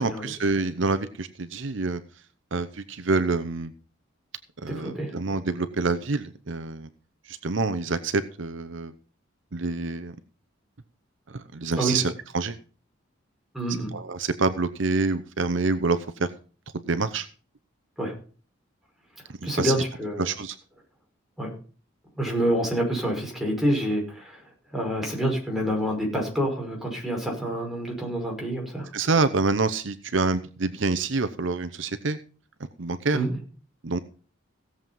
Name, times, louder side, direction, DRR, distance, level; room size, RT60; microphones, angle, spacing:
voice 1, 0.0-2.0 2.5-3.7 4.6-6.9 7.2-8.9 9.5-10.1 11.3-12.6 13.9-16.3 16.7-17.3 19.3-19.8 20.2-20.6 28.9-32.2 32.8-33.2 33.8-34.0, right 3 dB, 65° right, 12 dB, 0.8 m, -27 dB
voice 2, 4.7-5.1 11.8-12.0 13.5-13.9 18.0-18.1 19.4-20.2 21.4-21.5 22.2-24.4 24.7-28.9 33.1-33.4, right 1 dB, ahead, -1 dB, 5.6 m, -27 dB
17.0 x 7.5 x 5.5 m, 0.39 s
head